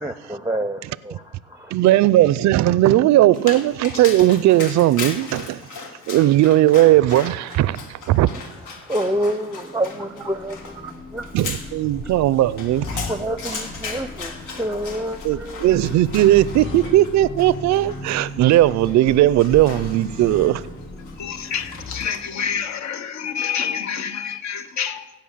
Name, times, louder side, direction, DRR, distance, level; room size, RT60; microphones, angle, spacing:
voice 1, 0.0-1.7 8.8-11.3 12.0-12.1 13.0-16.0, right 1 dB, 10° right, 0.5 m, -28 dB
voice 2, 1.7-5.6 6.1-8.3 11.3-13.0 15.2-20.6, right 14 dB, 65° right, 0.4 m, -17 dB
Dog, 3.3-22.4, left 4 dB, 85° left, 1.7 m, -37 dB
sound 1, 9.4-22.1, left 2 dB, 40° left, 4.7 m, -36 dB
voice 3, 21.2-25.1, left 7 dB, 65° left, 1.0 m, -28 dB
16.0 x 5.7 x 7.3 m
cardioid pair, 90°, 30 cm